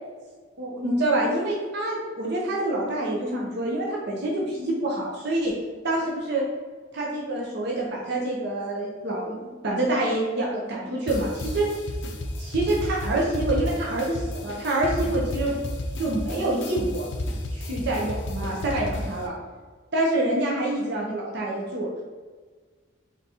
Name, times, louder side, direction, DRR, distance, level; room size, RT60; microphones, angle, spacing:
voice 1, 0.6-5.5 5.8-6.4 6.9-9.4 9.6-11.7 12.4-15.6 16.0-17.1 17.5-19.3 19.9-21.9, right 1 dB, 55° right, -3 dB, 0.7 m, -26 dB
sound 1, 11.1-19.3, left 1 dB, 60° left, 0.5 m, -32 dB
4.0 x 3.6 x 2.8 m, 1.5 s
head